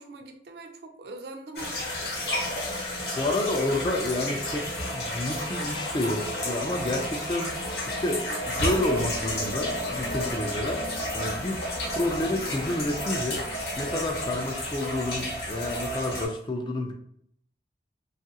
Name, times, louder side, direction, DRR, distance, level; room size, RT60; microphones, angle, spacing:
voice 1, 0.0-2.3, right 2 dB, 60° right, 4 dB, 0.4 m, -43 dB
sound 1, 1.6-16.3, left 1 dB, 60° left, 0.8 m, -31 dB
voice 2, 3.1-13.5 13.8-16.9, left 1 dB, 25° left, 3 dB, 0.3 m, -30 dB
2.9 x 2.4 x 2.7 m, 0.67 s
head